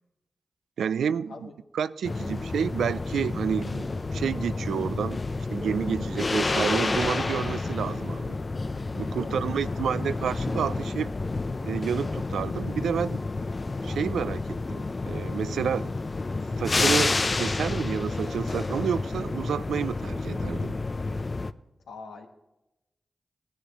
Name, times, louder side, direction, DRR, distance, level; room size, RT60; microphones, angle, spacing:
voice 1, 0.8-1.5 1.7-5.2 5.5-8.4 8.9-11.1 11.6-13.2 13.8-15.9 16.6-20.8, right 7 dB, 90° right, 0.3 m, -30 dB
sound 1, 2.0-21.5, left 3 dB, 45° left, 0.5 m, -30 dB
voice 2, 9.1-9.8 21.9-22.3, left 4 dB, 90° left, 1.3 m, -43 dB
16.5 x 10.0 x 3.0 m
cardioid pair, 40°, 0 cm